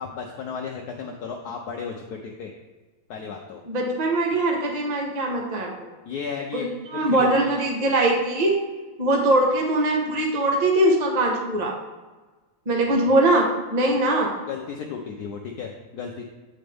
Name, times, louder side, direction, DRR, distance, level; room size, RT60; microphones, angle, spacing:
voice 1, 0.0-2.5 3.1-3.6 6.0-6.7 6.9-7.5 13.9-14.0 14.5-16.2, left 6 dB, 75° left, 2 dB, 0.9 m, -34 dB
voice 2, 3.6-5.7 6.5-8.5 9.0-11.7 12.7-14.3, right 1 dB, 30° right, 0 dB, 0.9 m, -21 dB
8.5 x 5.2 x 3.4 m, 1.3 s
omnidirectional pair, 2.3 m